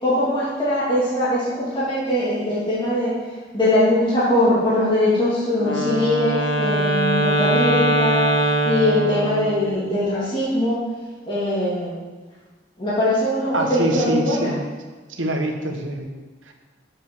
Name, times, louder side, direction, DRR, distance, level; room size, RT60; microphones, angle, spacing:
voice 1, 0.0-10.8 11.3-12.0 12.8-14.5, left 1 dB, 25° left, -10 dB, 3.0 m, -21 dB
Wind instrument woodwind instrument, 5.6-9.7, right 1 dB, 75° left, 1.2 m, -21 dB
voice 2, 13.5-14.7 15.1-16.1 16.4-16.5, right 1 dB, 85° right, 3 dB, 1.2 m, -25 dB
7.6 x 5.5 x 6.3 m, 1.3 s
head